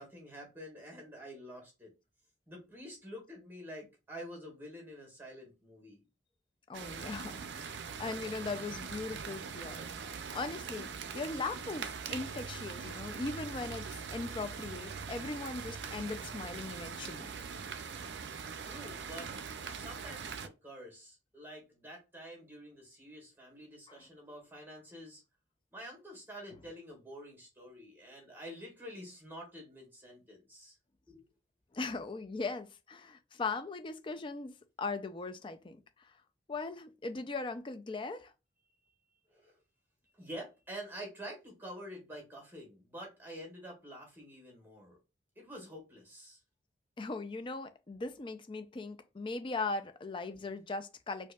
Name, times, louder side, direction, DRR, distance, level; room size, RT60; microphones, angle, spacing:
voice 1, 0.0-1.9 2.5-6.0 18.6-19.3 19.7-25.2 25.7-30.8 31.1-31.2 39.3-39.5 40.1-45.0 45.4-46.4 50.3-50.5, equal, 10° right, 1.8 m, -48 dB
voice 2, 6.7-17.3 23.9-24.0 31.7-34.5 34.8-36.1 36.5-38.3 47.0-51.3, left 3 dB, 30° left, 0.4 m, -39 dB
sound 1, 6.7-20.5, right 6 dB, 70° right, 0.4 m, -42 dB
4.5 x 2.6 x 2.3 m
head